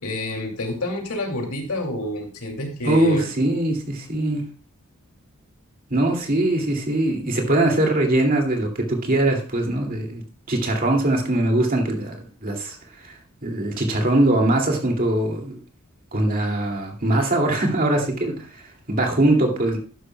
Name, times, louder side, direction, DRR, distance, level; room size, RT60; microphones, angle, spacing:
voice 1, 0.0-3.3, left 1 dB, 85° left, 2 dB, 2.5 m, -28 dB
voice 2, 2.8-4.4 5.9-10.2 10.5-12.8 13.4-15.6 16.1-18.4 18.9-19.8, right 1 dB, 40° right, 1 dB, 2.4 m, -21 dB
12.0 x 9.9 x 2.2 m, 0.38 s
head